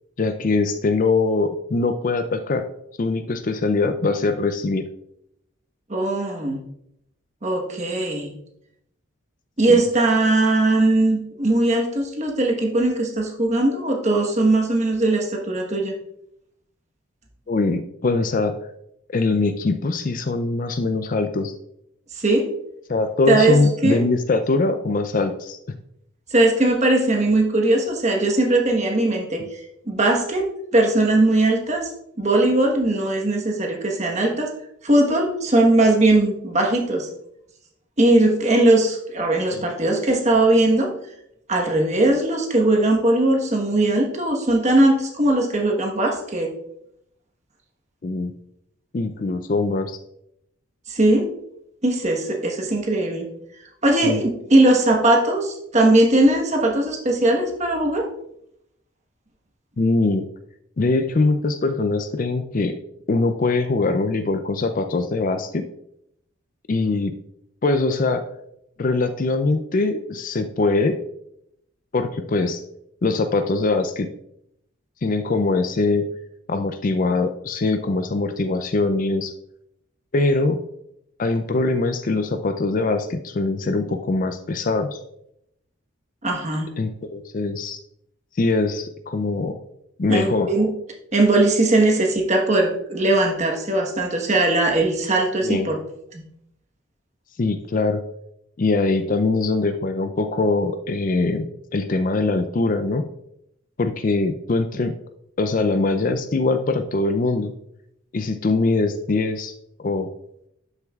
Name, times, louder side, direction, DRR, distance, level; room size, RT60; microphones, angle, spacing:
voice 1, 0.2-2.6 3.0-4.9 9.7-9.8 17.5-18.6 19.1-21.5 22.9-25.6 39.5-39.6 48.0-48.3 48.9-50.0 54.0-54.2 59.8-60.3 60.8-62.7 63.1-65.7 66.7-67.2 67.6-68.3 68.8-71.0 71.9-72.6 73.0-74.1 75.0-76.1 76.5-79.3 80.1-80.6 81.2-85.0 86.8-87.8 88.4-89.5 90.0-90.5 95.4-95.7 97.4-98.0 98.6-103.1 103.8-104.9 105.4-107.5 108.1-109.5 109.8-110.1, left 3 dB, 40° left, 9 dB, 0.4 m, -22 dB
voice 2, 5.9-6.6 7.4-8.3 9.6-15.9 22.1-22.5 23.3-24.0 26.3-29.6 29.9-31.9 32.2-34.5 34.8-37.1 38.0-40.9 41.5-46.5 50.9-51.3 51.8-53.3 53.8-58.1 86.2-86.7 90.1-90.7 91.1-95.8 96.1-96.2, right 2 dB, 30° right, 1 dB, 1.2 m, -19 dB
11.5 x 6.5 x 2.4 m, 0.78 s
head